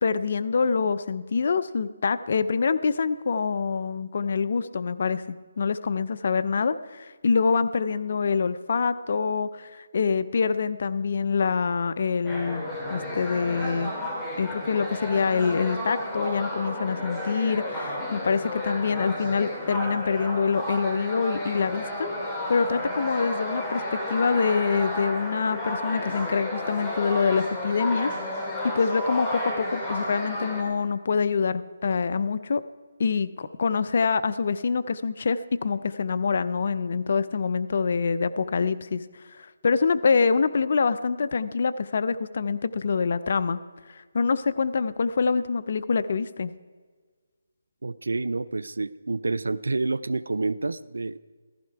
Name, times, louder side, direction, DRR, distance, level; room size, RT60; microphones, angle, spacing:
voice 1, 0.0-5.2 5.6-12.6 12.9-13.9 14.4-28.5 28.7-32.6 33.0-39.0 39.3-43.6 43.9-46.5, left 5 dB, 55° left, 12 dB, 0.6 m, -25 dB
sound 1, 12.2-30.6, left 1 dB, 10° left, 2.6 m, -32 dB
voice 2, 47.8-51.2, right 3 dB, 85° right, 18 dB, 0.5 m, -28 dB
15.0 x 15.0 x 4.7 m, 1.5 s
hypercardioid pair, 165°, 0 cm